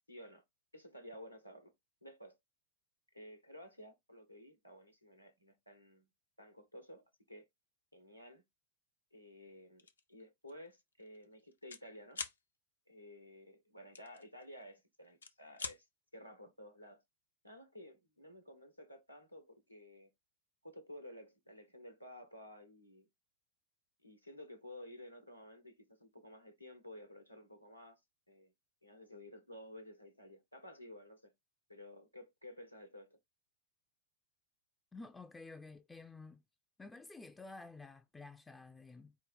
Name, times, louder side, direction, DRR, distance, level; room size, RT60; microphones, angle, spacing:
voice 1, 0.1-0.4 0.7-1.7 2.0-2.4 3.1-6.1 6.4-7.4 7.9-8.4 9.1-12.2 12.9-15.9 16.1-17.0 17.4-20.1 20.6-23.1 24.0-28.0 28.3-28.5 28.8-31.3 31.7-33.2, left 1 dB, 90° left, 1.0 m, -54 dB
sound 1, 9.8-10.0 10.5-10.7 10.9-11.8 12.1-12.4 13.9-14.7 15.1-15.8, left 4 dB, 75° left, 0.5 m, -44 dB
voice 2, 34.9-36.4 36.8-39.2, left 3 dB, 10° left, 0.3 m, -51 dB
4.7 x 2.2 x 4.0 m
figure-of-eight pair, 90°, 0 cm